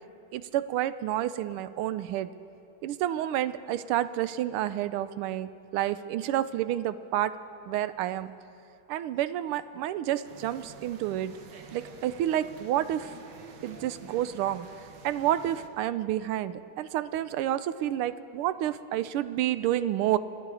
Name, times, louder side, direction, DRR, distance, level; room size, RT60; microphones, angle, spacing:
voice 1, 0.3-2.3 2.8-7.3 7.7-8.3 8.9-11.4 11.7-13.2 13.6-14.7 15.0-20.2, right 12 dB, 80° right, 14 dB, 1.5 m, -29 dB
sound 1, 10.2-15.7, right 4 dB, 55° right, 1.5 m, -48 dB
26.5 x 11.0 x 4.8 m, 2.6 s
omnidirectional pair, 2.4 m